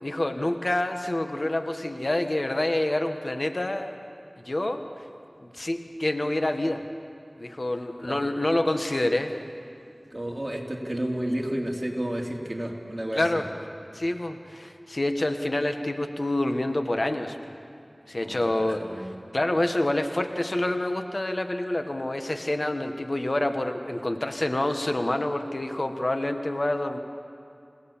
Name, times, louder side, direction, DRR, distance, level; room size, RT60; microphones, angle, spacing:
voice 1, 0.0-3.9 4.4-4.8 5.4-6.8 7.4-9.3 13.1-13.5 13.9-17.4 18.1-18.8 19.3-27.0, left 1 dB, 65° left, 6 dB, 1.3 m, -27 dB
voice 2, 10.1-13.2 18.2-18.4 18.8-19.1, right 1 dB, 35° right, -1 dB, 3.1 m, -31 dB
28.5 x 17.5 x 7.3 m, 2.4 s
wide cardioid pair, 40°, 0 cm